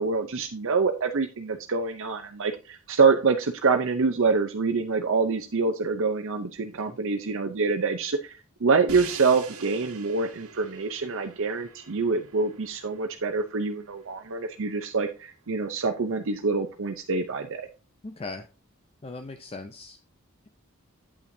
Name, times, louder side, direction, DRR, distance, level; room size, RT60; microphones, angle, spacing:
voice 1, 0.0-17.7, right 4 dB, 65° right, 6 dB, 0.7 m, -26 dB
Crash cymbal, 8.9-14.9, right 5 dB, 85° right, 1.3 m, -45 dB
voice 2, 18.0-18.5 19.0-20.0, left 3 dB, 25° left, 6 dB, 0.6 m, -39 dB
8.7 x 8.5 x 2.7 m, 0.33 s
head